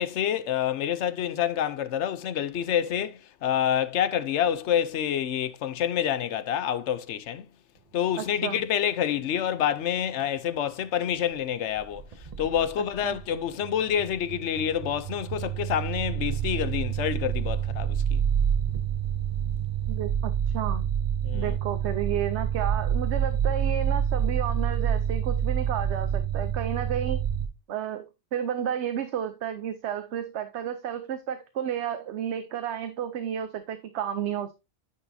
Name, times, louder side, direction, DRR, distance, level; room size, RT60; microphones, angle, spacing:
voice 1, 0.0-7.5 7.9-12.0 12.4-18.2 21.2-21.6, left 9 dB, 80° left, 1.0 m, -27 dB
voice 2, 8.2-8.6 13.0-13.2 19.9-20.9 21.3-27.2 27.7-28.1 28.3-34.5, right 9 dB, 75° right, 1.0 m, -32 dB
sound 1, 11.8-13.4 13.6-27.5, right 8 dB, 40° right, 0.6 m, -28 dB
9.6 x 5.6 x 2.6 m
omnidirectional pair, 1.2 m